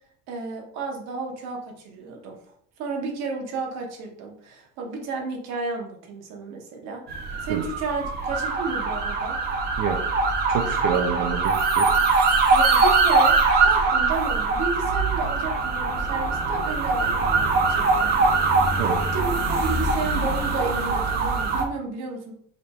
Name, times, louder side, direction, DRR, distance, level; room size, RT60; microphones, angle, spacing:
voice 1, 0.3-2.4 2.8-7.0 7.4-9.4 12.5-13.3 13.6-18.1 18.4-18.5 18.9-22.3, right 4 dB, 55° right, 1 dB, 0.9 m, -32 dB
sound 1, 7.1-21.6, right 3 dB, 30° right, 0.5 m, -22 dB
voice 2, 9.8-10.2 10.5-12.0 18.8-19.0, right 7 dB, 80° right, 3 dB, 0.5 m, -27 dB
5.1 x 2.9 x 2.3 m, 0.63 s
cardioid pair, 170°, 31 cm